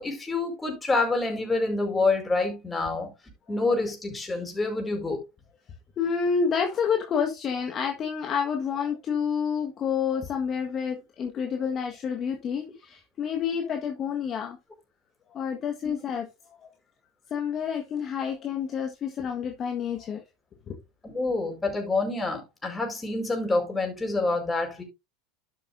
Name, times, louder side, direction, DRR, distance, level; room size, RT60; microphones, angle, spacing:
voice 1, 0.0-3.1 3.5-5.2 21.0-24.8, left 3 dB, 15° left, 4.9 m, -27 dB
voice 2, 6.0-14.6 15.3-16.3 17.3-20.2 20.7-20.8, left 6 dB, 35° left, 1.6 m, -29 dB
11.5 x 7.7 x 2.6 m
hypercardioid pair, 85°, 0 cm